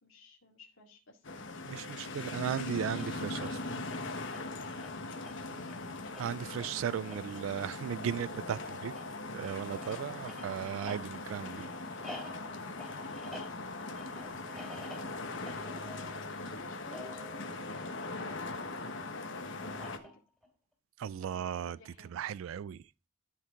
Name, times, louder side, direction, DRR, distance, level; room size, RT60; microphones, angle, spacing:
voice 1, 0.0-2.5 4.7-6.0 8.5-9.0 9.7-10.6 12.6-12.9 13.9-18.1 18.7-20.2 21.2-22.2, left 1 dB, 85° left, 2.2 m, -56 dB
sound 1, 1.2-20.0, left 2 dB, 65° left, 1.2 m, -40 dB
voice 2, 1.7-3.6 6.2-8.9 9.3-11.7 21.0-21.8 22.1-22.8, right 8 dB, 75° right, 0.3 m, -36 dB
sound 2, 2.9-18.6 19.6-20.5, left 1 dB, ahead, 3.0 m, -51 dB
13.0 x 4.6 x 3.7 m
head